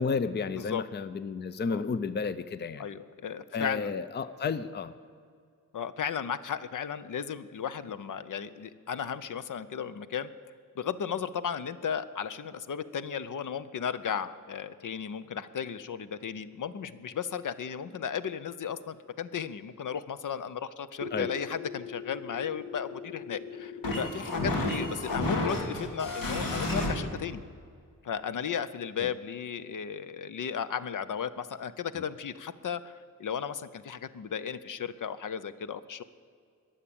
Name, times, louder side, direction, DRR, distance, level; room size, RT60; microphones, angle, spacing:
voice 1, 0.0-2.9 3.5-4.9 21.1-21.3 29.0-29.1, left 5 dB, 30° left, 14 dB, 0.5 m, -32 dB
voice 2, 0.5-0.8 1.7-1.8 2.8-3.9 5.7-10.3 10.8-27.4 28.0-32.9 33.2-36.0, left 7 dB, 65° left, 14 dB, 0.7 m, -35 dB
sound 1, 21.0-26.9, left 2 dB, 85° left, 2.7 m, -33 dB
21.0 x 7.3 x 8.7 m, 2.2 s
wide cardioid pair, 140°, 33 cm